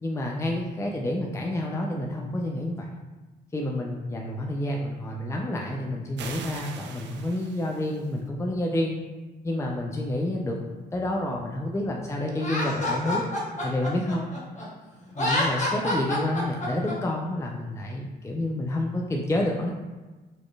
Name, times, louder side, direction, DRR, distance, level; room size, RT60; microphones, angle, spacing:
voice 1, 0.0-2.9 3.5-9.0 9.4-13.2 13.6-14.3 15.1-19.7, left 1 dB, 15° left, 0 dB, 0.5 m, -29 dB
sound 1, 6.2-8.2, right 6 dB, 60° right, 0.5 m, -41 dB
Laughter, 12.4-14.6 15.1-16.9, left 1 dB, 35° left, 1.3 m, -28 dB
4.0 x 3.0 x 2.4 m, 1.2 s
hypercardioid pair, 50°, 21 cm